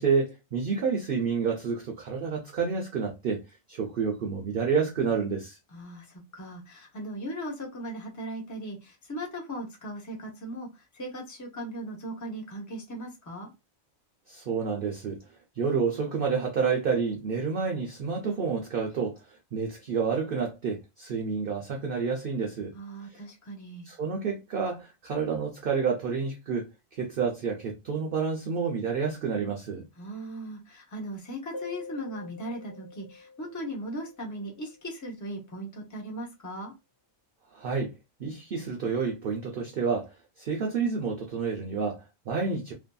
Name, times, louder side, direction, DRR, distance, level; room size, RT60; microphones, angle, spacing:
voice 1, 0.0-3.4 3.7-5.6 14.3-15.2 15.6-19.2 19.5-22.7 23.9-29.9 37.5-37.9 38.2-40.1 40.4-42.7, right 5 dB, 60° right, 0.6 m, -29 dB
voice 2, 5.7-13.5 22.7-23.9 30.0-36.7, right 1 dB, 20° left, 0.5 m, -38 dB
sound 1, 31.5-34.8, left 4 dB, 60° left, 1.2 m, -45 dB
2.6 x 2.6 x 2.2 m
omnidirectional pair, 1.4 m